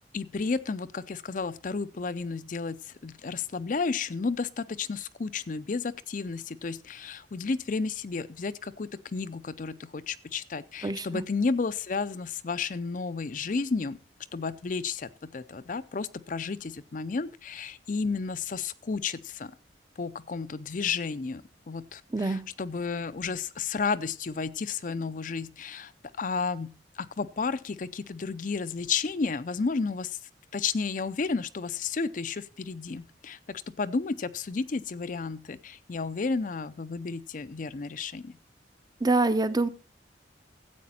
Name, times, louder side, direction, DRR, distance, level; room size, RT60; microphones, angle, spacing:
voice 1, 0.1-14.0 14.3-19.5 20.0-25.9 26.2-30.2 30.5-38.4, left 4 dB, 45° left, 15 dB, 0.5 m, -32 dB
voice 2, 10.8-11.2 22.1-22.4 39.0-39.7, right 3 dB, 20° right, 13 dB, 0.6 m, -25 dB
13.0 x 8.4 x 4.2 m, 0.36 s
head